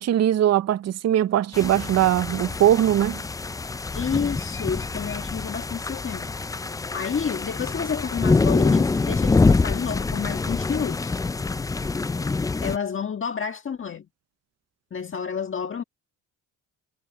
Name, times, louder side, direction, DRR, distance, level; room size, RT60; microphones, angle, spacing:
voice 1, 0.0-3.2, right 11 dB, 50° right, 0.6 m, -20 dB
sound 1, 1.5-12.8, left 3 dB, 10° left, 0.3 m, -25 dB
voice 2, 3.9-6.3 6.9-11.2 12.6-14.1 14.9-15.8, left 6 dB, 40° left, 1.6 m, -30 dB
cardioid pair, 90°, 33 cm